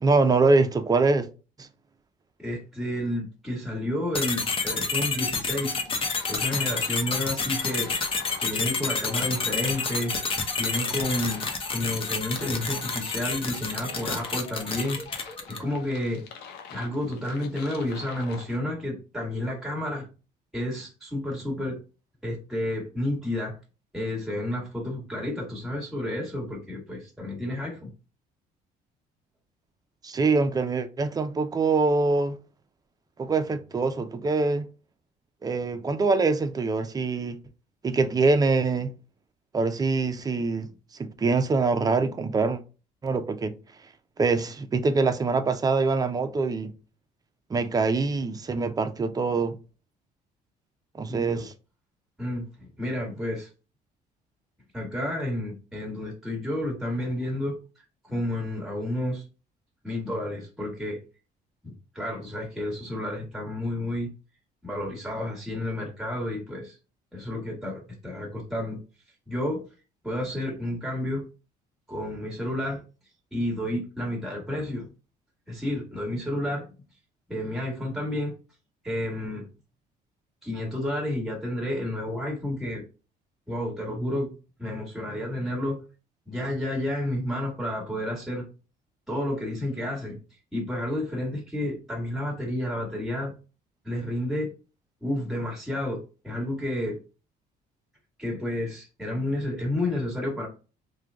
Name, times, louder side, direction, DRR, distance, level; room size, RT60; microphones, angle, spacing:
voice 1, 0.0-1.3 1.6-1.7 30.0-32.4 33.2-34.7 35.4-37.4 37.8-38.9 39.5-40.7 41.0-42.6 43.0-43.6 44.2-46.7 47.5-49.6 51.0-51.5, right 3 dB, 20° right, 0.5 m, -24 dB
voice 2, 2.4-5.8 6.3-7.9 8.4-10.2 10.6-11.4 11.7-15.0 15.5-16.2 16.7-20.1 20.5-21.8 22.2-23.5 23.9-27.9 51.1-51.5 52.2-53.5 54.7-57.6 58.1-59.2 59.8-61.0 61.6-64.1 64.6-66.8 67.1-68.8 69.3-69.6 70.0-71.2 71.9-72.8 73.3-74.9 75.5-76.7 77.3-78.3 78.8-79.5 80.4-82.8 83.5-84.3 84.6-85.8 86.3-88.5 89.1-90.2 90.5-93.3 93.8-94.5 95.0-97.0 98.2-100.5, left 1 dB, ahead, 1.5 m, -30 dB
sound 1, 4.1-15.7, left 4 dB, 30° left, 0.7 m, -29 dB
sound 2, 5.6-18.6, left 6 dB, 85° left, 0.7 m, -45 dB
3.2 x 2.2 x 3.5 m
cardioid pair, 110°, 17 cm